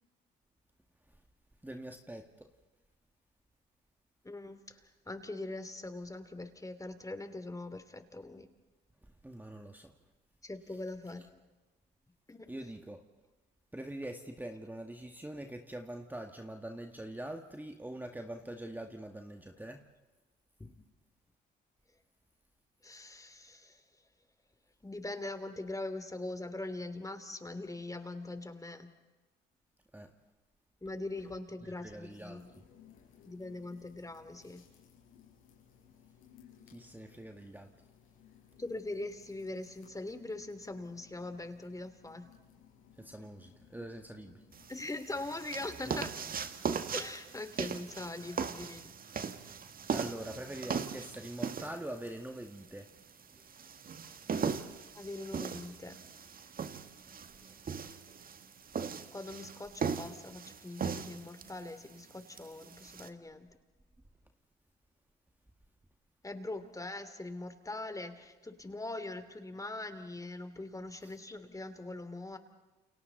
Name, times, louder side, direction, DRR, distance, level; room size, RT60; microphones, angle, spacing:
voice 1, 1.6-2.5 9.0-9.9 10.7-10.8 12.5-13.0 13.7-19.9 29.9-30.1 31.6-32.6 36.7-37.7 43.0-44.4 45.9-46.0 49.9-52.9 53.3-53.5 57.3-57.7 71.0-71.2, right 1 dB, 10° right, 5 dB, 2.1 m, -44 dB
voice 2, 4.2-4.8 5.1-8.5 10.4-11.3 12.3-12.5 20.6-20.8 22.8-23.8 24.8-28.9 30.8-32.5 33.2-34.6 38.6-42.3 44.7-46.1 46.9-48.9 54.9-56.0 59.1-63.5 66.2-72.4, left 2 dB, 15° left, 9 dB, 3.0 m, -42 dB
sound 1, 32.1-44.8, left 8 dB, 80° left, 6.0 m, -61 dB
sound 2, 44.5-63.1, right 6 dB, 45° right, 1.9 m, -39 dB
30.0 x 29.0 x 4.1 m, 1.2 s
hypercardioid pair, 60°, 21 cm